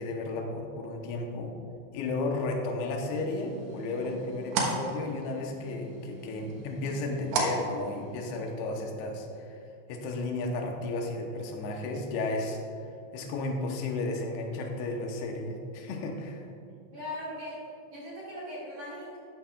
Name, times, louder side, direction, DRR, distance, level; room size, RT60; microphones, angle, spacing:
voice 1, 0.0-1.5 1.9-9.6 9.9-12.6 13.1-16.5, left 2 dB, 75° left, 2 dB, 2.5 m, -33 dB
sound 1, 3.1-8.5, right 3 dB, 70° right, 3.3 m, -36 dB
voice 2, 16.9-17.6 17.9-19.2, left 1 dB, 45° right, -7 dB, 2.2 m, -39 dB
13.0 x 10.5 x 2.4 m, 2.6 s
omnidirectional pair, 5.6 m